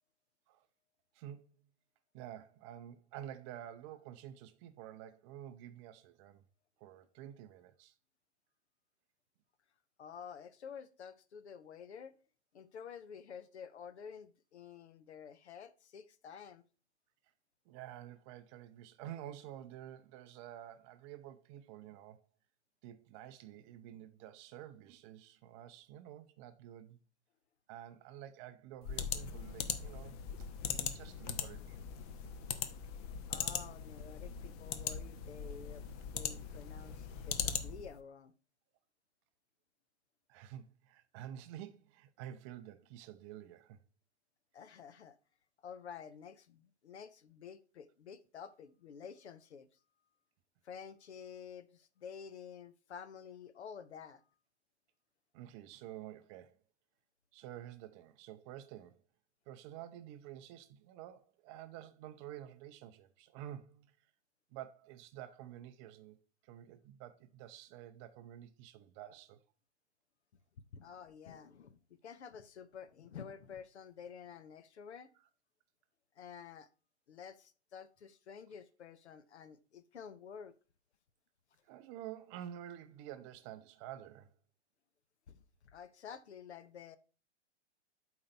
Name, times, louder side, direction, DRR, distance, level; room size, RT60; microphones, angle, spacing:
voice 1, 1.1-1.5 2.1-6.4 6.8-7.9 17.7-22.2 22.8-27.0 27.7-31.9 40.3-43.8 55.3-56.6 57.3-59.0 59.5-64.1 64.5-66.2 66.4-69.4 81.6-84.3, right 11 dB, 25° right, 0.5 m, -50 dB
voice 2, 10.0-12.2 12.5-16.6 33.3-38.3 44.5-45.2 45.6-49.7 50.6-54.2 70.7-75.1 76.2-76.7 77.1-80.5 85.3-87.0, left 7 dB, 75° left, 0.8 m, -50 dB
sound 1, 28.8-38.0, left 8 dB, 35° left, 0.7 m, -40 dB
8.6 x 4.0 x 4.3 m
hypercardioid pair, 120°, 34 cm